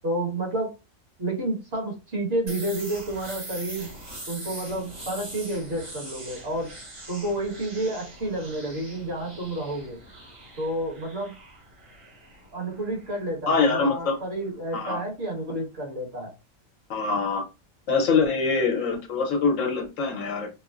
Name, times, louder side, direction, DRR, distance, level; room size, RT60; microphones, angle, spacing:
voice 1, 0.0-0.7 1.2-3.9 4.3-6.7 7.1-10.0 10.6-11.3 12.5-16.3, right 1 dB, 50° right, 0 dB, 1.6 m, -30 dB
sound 1, 2.5-14.1, right 1 dB, 75° right, 2.8 m, -42 dB
voice 2, 13.5-14.2 14.7-15.0 16.9-17.4 17.9-20.5, left 4 dB, 85° left, 2 dB, 1.3 m, -24 dB
5.1 x 2.0 x 2.4 m, 0.27 s
omnidirectional pair, 1.3 m